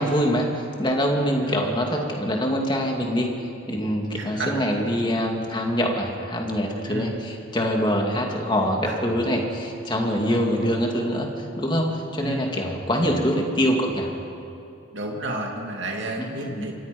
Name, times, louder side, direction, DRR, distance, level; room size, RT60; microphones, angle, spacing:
voice 1, 0.0-3.3 3.7-14.1 16.2-16.7, equal, 20° left, 1 dB, 2.6 m, -24 dB
voice 2, 1.4-2.1 4.1-4.5 6.9-7.2 8.5-9.0 10.3-10.8 12.2-12.6 14.9-16.7, right 1 dB, 60° right, 0 dB, 2.6 m, -32 dB
27.5 x 23.5 x 5.5 m, 2.8 s
head